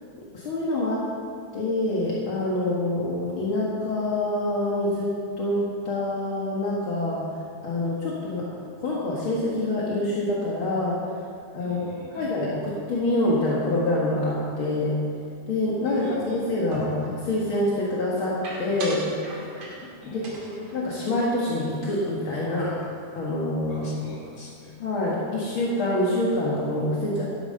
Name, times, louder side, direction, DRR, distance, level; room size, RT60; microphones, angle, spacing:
voice 1, 0.3-1.0 1.5-8.5 8.8-11.2 11.5-15.0 15.5-19.5 19.8-20.2 20.7-22.8 23.1-23.8 24.8-27.2, left 1 dB, 55° left, -6 dB, 1.5 m, -26 dB
voice 2, 11.6-12.5 15.8-16.5 20.0-20.7 23.7-24.8, left 2 dB, 20° left, -4 dB, 3.4 m, -44 dB
sound 1, 16.7-17.3 18.4-19.9 20.2-22.0 22.3-22.4 22.7-23.2, right 2 dB, 50° right, 3.1 m, -39 dB
12.5 x 11.5 x 5.5 m, 2.4 s
omnidirectional pair, 4.7 m